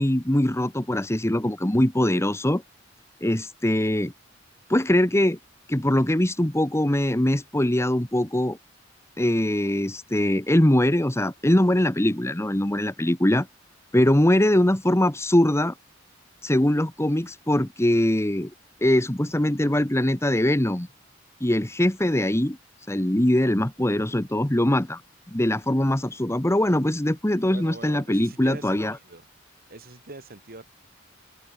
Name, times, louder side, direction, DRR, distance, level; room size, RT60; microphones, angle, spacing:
voice 1, 0.0-2.6 3.2-4.1 4.7-5.4 5.7-8.6 9.2-13.5 13.9-15.7 16.4-18.5 18.8-20.9 21.4-22.6 22.9-25.0 25.3-29.0, left 1 dB, 15° left, 1.3 m, -22 dB
voice 2, 27.5-29.2 29.7-30.6, right 2 dB, 50° right, 3.3 m, -42 dB
head